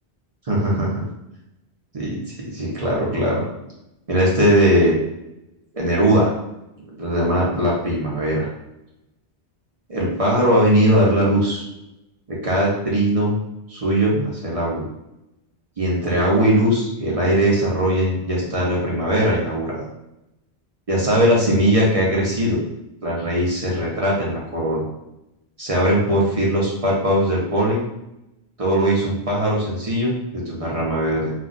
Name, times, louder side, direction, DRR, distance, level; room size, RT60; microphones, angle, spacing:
voice 1, 0.5-1.0 1.9-3.4 4.1-4.9 5.7-6.3 7.0-8.5 9.9-11.6 12.3-13.3 13.7-14.8 15.8-19.9 20.9-22.6 23.0-24.8 25.6-27.8 28.6-31.3, right 1 dB, 40° right, -4 dB, 0.6 m, -20 dB
2.4 x 2.2 x 3.8 m, 0.88 s
omnidirectional pair, 1.2 m